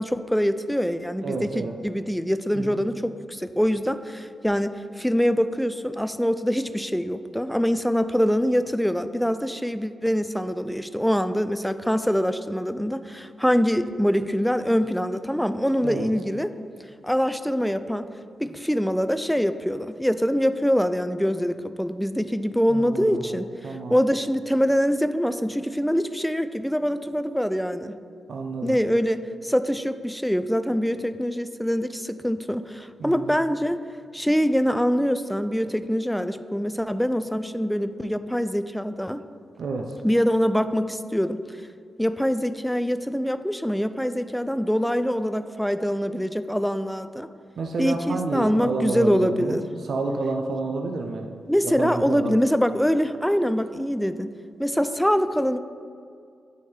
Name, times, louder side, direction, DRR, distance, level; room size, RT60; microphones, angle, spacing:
voice 1, 0.0-16.5 17.0-18.1 18.4-23.5 23.9-27.9 28.6-33.8 34.1-39.2 40.0-41.4 42.0-47.3 47.8-49.6 51.5-54.3 54.6-55.6, equal, ahead, 11 dB, 0.3 m, -24 dB
voice 2, 1.2-1.7 2.5-2.8 15.8-16.1 22.7-24.0 28.3-28.8 33.0-33.3 39.6-40.0 47.6-51.3 51.6-52.4, right 3 dB, 70° right, 3 dB, 0.4 m, -30 dB
9.2 x 3.1 x 3.3 m, 2.3 s
supercardioid pair, 50°, 0 cm